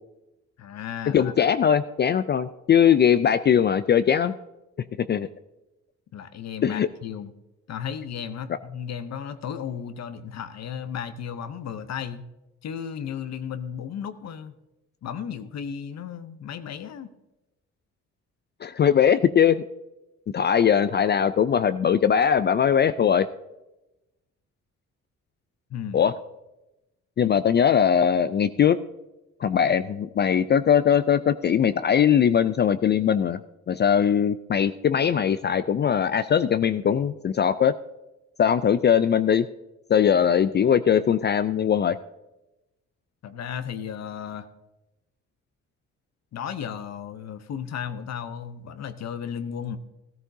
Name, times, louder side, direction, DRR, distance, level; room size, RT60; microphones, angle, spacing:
voice 1, 0.6-1.5 6.1-7.3 7.7-12.3 12.6-14.6 15.0-17.1 25.7-26.1 43.2-44.5 46.3-49.8, left 8 dB, 60° left, 10 dB, 0.8 m, -34 dB
voice 2, 1.1-4.4 5.0-5.3 6.6-6.9 18.6-19.6 20.3-23.3 25.9-26.1 27.2-28.8 29.4-33.4 33.7-37.7 38.4-39.5 39.9-42.0, left 8 dB, 35° left, 12 dB, 0.4 m, -20 dB
14.0 x 13.5 x 2.7 m, 0.97 s
cardioid pair, 90°, 30 cm